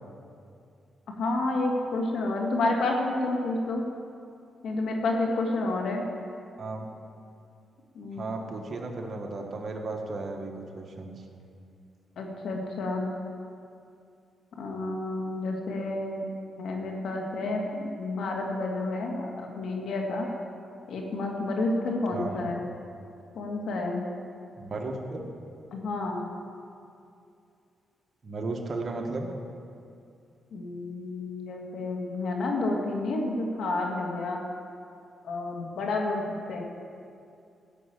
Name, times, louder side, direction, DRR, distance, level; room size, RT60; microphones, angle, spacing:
voice 1, 1.2-3.8 4.6-6.0 7.9-8.3 12.2-13.1 14.6-16.2 16.6-20.3 20.9-22.6 23.3-24.1 25.7-26.2 30.5-34.4 35.2-36.6, left 2 dB, 75° left, 1 dB, 2.3 m, -30 dB
voice 2, 8.2-11.1 22.1-22.5 24.6-25.3 28.2-29.3, right 3 dB, 45° right, 2 dB, 1.8 m, -35 dB
15.5 x 6.4 x 8.5 m, 2.5 s
cardioid pair, 85°, 0 cm